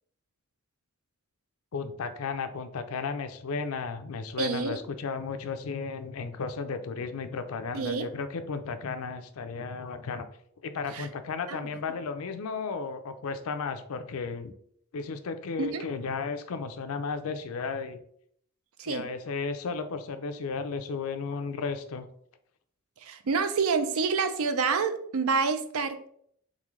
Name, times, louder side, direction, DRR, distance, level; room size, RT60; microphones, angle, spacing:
voice 1, 1.7-10.3 10.6-14.5 14.9-18.0 18.9-22.1, left 5 dB, 75° left, 9 dB, 0.4 m, -34 dB
voice 2, 4.4-4.8 7.7-8.1 10.9-11.1 11.5-11.6 15.6-15.9 18.8-19.1 23.0-26.1, right 5 dB, 75° right, 10 dB, 0.5 m, -28 dB
3.8 x 3.7 x 3.1 m, 0.66 s
head